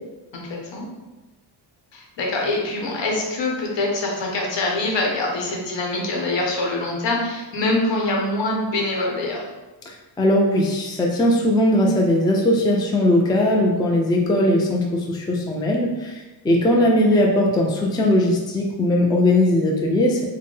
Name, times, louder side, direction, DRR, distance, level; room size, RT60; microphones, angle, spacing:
voice 1, 0.3-0.9 1.9-9.4, left 2 dB, 60° left, -1 dB, 1.0 m, -24 dB
voice 2, 9.9-20.2, left 1 dB, 10° left, 0 dB, 0.4 m, -19 dB
4.1 x 2.2 x 3.2 m, 1.1 s
cardioid pair, 90°, 48 cm